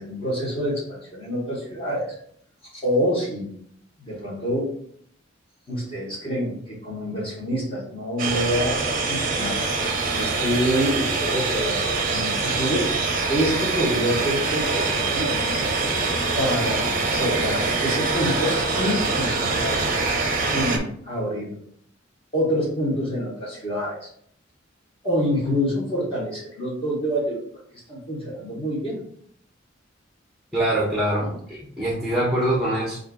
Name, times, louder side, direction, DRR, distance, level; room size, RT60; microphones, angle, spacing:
voice 1, 0.0-2.2 2.8-3.5 4.0-4.7 5.7-11.8 12.1-12.9 13.3-15.6 16.4-20.0 20.5-21.6 22.3-24.1 25.0-27.4 27.7-29.0 31.2-31.3, equal, 30° left, -5 dB, 1.2 m, -27 dB
sound 1, 8.2-20.8, right 3 dB, 45° right, 0.6 m, -24 dB
voice 2, 30.5-33.0, right 1 dB, ahead, -6 dB, 0.8 m, -24 dB
6.3 x 2.5 x 2.3 m, 0.65 s
head